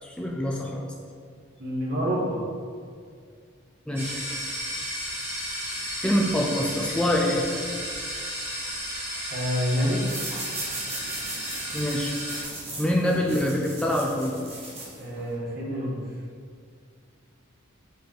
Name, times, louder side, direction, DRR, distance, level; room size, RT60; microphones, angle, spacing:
voice 1, 0.0-0.9 3.9-4.2 5.7-7.5 11.7-12.1 12.8-14.3, left 1 dB, 5° left, -2 dB, 0.5 m, -25 dB
voice 2, 1.6-2.4 9.3-10.0 15.0-16.0, equal, 45° right, -4 dB, 1.6 m, -27 dB
sound 1, 4.0-12.4, equal, 10° right, 1.7 m, -33 dB
sound 2, 10.0-15.3, right 2 dB, 30° right, 1.8 m, -38 dB
6.8 x 4.7 x 4.7 m, 2.2 s
head